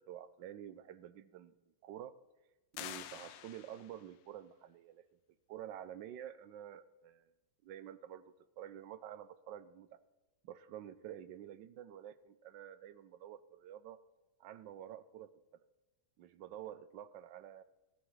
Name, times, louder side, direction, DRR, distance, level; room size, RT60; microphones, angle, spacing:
voice 1, 0.0-1.5 1.8-2.2 2.7-5.0 5.5-7.3 7.6-8.2 8.6-9.9 10.4-14.0 14.4-15.3 16.2-17.6, right 11 dB, 75° right, 13 dB, 1.1 m, -49 dB
sound 1, 2.7-4.1, left 12 dB, 90° left, 1.6 m, -48 dB
15.0 x 11.5 x 3.2 m, 1.1 s
omnidirectional pair, 2.4 m